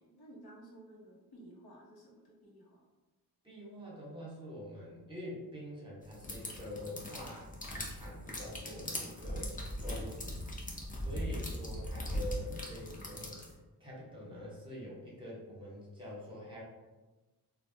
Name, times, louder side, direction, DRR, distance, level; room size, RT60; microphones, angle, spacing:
voice 1, 0.0-2.9, right 1 dB, 70° left, -4 dB, 0.9 m, -55 dB
voice 2, 3.4-10.4 11.0-13.4 13.8-16.6, left 1 dB, 15° right, -5 dB, 1.0 m, -45 dB
sound 1, 6.1-13.5, left 1 dB, 20° left, 0.6 m, -40 dB
3.2 x 2.2 x 2.7 m, 1.2 s
cardioid pair, 100°, 38 cm